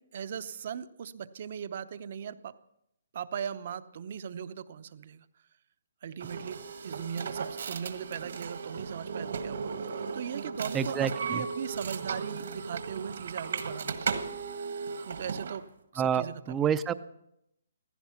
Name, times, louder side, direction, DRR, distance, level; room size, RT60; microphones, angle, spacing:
voice 1, 0.0-2.5 3.1-5.2 6.0-9.7 10.1-14.3 15.0-15.7 15.9-16.7, right 8 dB, 45° right, 14 dB, 0.7 m, -39 dB
sound 1, 6.2-15.6, right 5 dB, 65° right, 1.5 m, -36 dB
voice 2, 10.7-11.4 16.0-16.9, right 8 dB, 10° right, 14 dB, 0.5 m, -28 dB
15.5 x 15.5 x 5.8 m, 0.79 s
hypercardioid pair, 165°, 0 cm